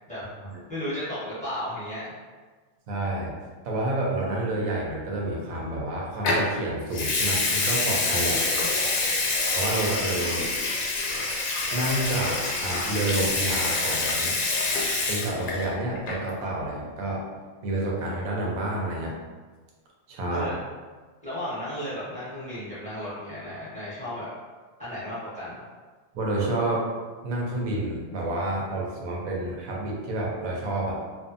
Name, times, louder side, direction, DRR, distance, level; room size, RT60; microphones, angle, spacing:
voice 1, 0.7-2.2 8.8-9.2 20.3-20.5 21.2-24.3 24.8-25.6, equal, 5° left, -11 dB, 1.0 m, -34 dB
voice 2, 2.9-3.3 3.6-8.4 9.5-10.5 11.7-14.4 15.1-17.2 17.6-19.1 20.1-20.6 26.1-26.8 27.2-30.9, right 2 dB, 80° right, -3 dB, 1.0 m, -29 dB
Water tap faucet / Sink (filling or washing) / Liquid, 6.2-6.5 6.9-15.7 15.9-16.3, left 3 dB, 80° left, 1.0 m, -26 dB
2.5 x 2.3 x 2.5 m, 1.4 s
omnidirectional pair, 1.5 m